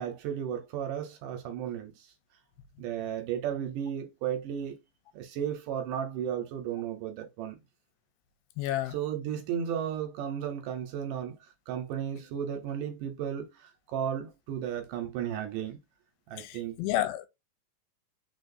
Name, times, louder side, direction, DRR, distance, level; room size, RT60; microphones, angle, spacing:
voice 1, 0.0-2.1 2.8-4.8 5.1-7.6 8.9-11.4 11.7-15.8 16.3-16.8, right 9 dB, 70° right, 2.2 m, -34 dB
voice 2, 8.6-8.9 16.4-17.3, left 13 dB, 90° left, 2.4 m, -30 dB
4.5 x 4.4 x 2.6 m
omnidirectional pair, 4.2 m